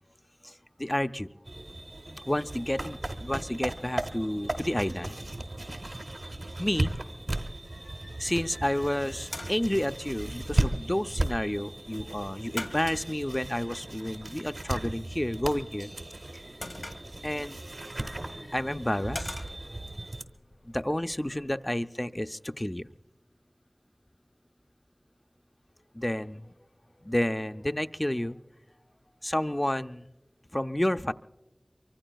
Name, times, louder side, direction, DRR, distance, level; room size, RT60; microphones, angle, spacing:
voice 1, 0.4-1.3 2.3-5.1 6.6-7.0 7.8-15.9 16.3-16.4 17.2-17.6 18.0-19.8 20.6-22.9 25.9-26.5 27.0-28.4 29.2-30.1 30.5-31.1, left 1 dB, 25° left, 11 dB, 0.4 m, -30 dB
sound 1, 1.4-20.2, right 1 dB, 80° right, 1.0 m, -36 dB
sound 2, 8.8-21.6, left 1 dB, 80° left, 1.7 m, -46 dB
24.0 x 24.0 x 2.3 m, 1.0 s
wide cardioid pair, 45°, 0 cm